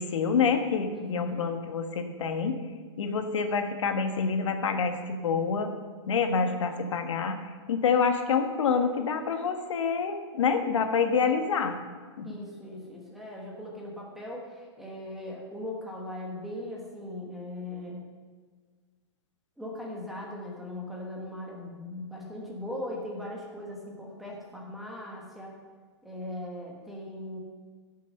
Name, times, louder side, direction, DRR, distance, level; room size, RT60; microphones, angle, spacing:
voice 1, 0.0-2.6 3.0-5.7 6.1-11.8 12.2-12.3, left 5 dB, 85° left, 6 dB, 1.5 m, -27 dB
voice 2, 0.9-1.4 12.2-18.1 19.6-25.6 26.0-27.4, left 1 dB, ahead, -3 dB, 1.2 m, -39 dB
16.0 x 6.5 x 5.4 m, 1.5 s
supercardioid pair, 175°, 15 cm